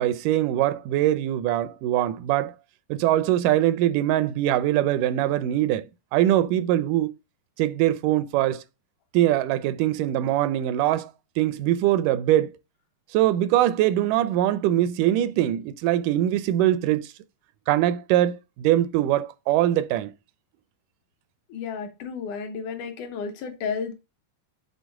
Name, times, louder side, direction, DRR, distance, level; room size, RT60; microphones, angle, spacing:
voice 1, 0.0-2.6 2.9-5.9 6.1-7.2 7.6-8.6 9.1-11.1 11.4-12.6 13.1-17.1 17.7-20.1, right 13 dB, 85° right, 2.1 m, -22 dB
voice 2, 21.5-23.9, left 6 dB, 75° left, 2.4 m, -32 dB
8.2 x 4.1 x 3.6 m
omnidirectional pair, 3.6 m